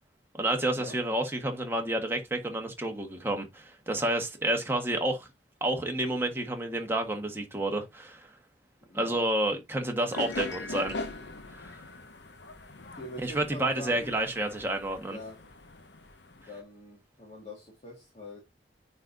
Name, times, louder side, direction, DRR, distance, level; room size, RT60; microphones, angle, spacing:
voice 1, 0.3-5.3 5.6-8.3 8.9-11.1 11.6-11.8 13.2-15.2, right 1 dB, 15° right, 1.4 m, -30 dB
voice 2, 8.8-9.3 12.8-14.2 15.1-15.4 16.3-18.4, left 1 dB, 35° left, 1.9 m, -44 dB
sound 1, 10.1-16.6, left 2 dB, 80° left, 1.0 m, -41 dB
9.5 x 3.9 x 2.7 m
head